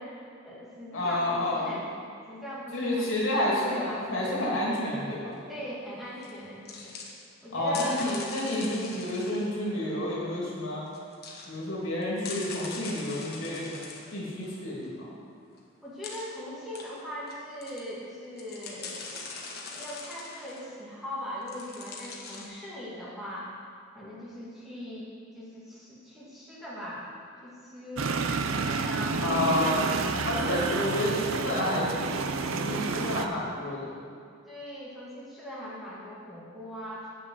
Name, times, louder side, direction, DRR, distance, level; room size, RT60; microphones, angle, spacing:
voice 1, 0.0-1.9 2.3-4.1 5.5-7.0 7.4-8.2 15.8-19.1 19.7-23.6 23.9-27.1 27.4-28.1 28.7-29.9 30.6-30.8 34.5-37.1, equal, ahead, -8 dB, 2.0 m, -40 dB
voice 2, 0.9-1.7 2.7-5.4 7.5-10.8 11.5-13.8 14.1-15.1 29.2-29.9 30.2-32.2 32.5-33.9, left 1 dB, 70° left, -5 dB, 2.8 m, -29 dB
sound 1, 6.2-6.3 6.7-7.1 7.7-9.5 10.9-11.5 12.0-14.9 15.5-15.6 16.0-16.4 16.7-17.3 17.6-17.8 18.2-20.6 21.4-22.5, left 4 dB, 50° left, 1.3 m, -42 dB
sound 2, 28.0-33.3, right 4 dB, 80° right, 0.6 m, -29 dB
8.4 x 6.8 x 7.6 m, 2.2 s
head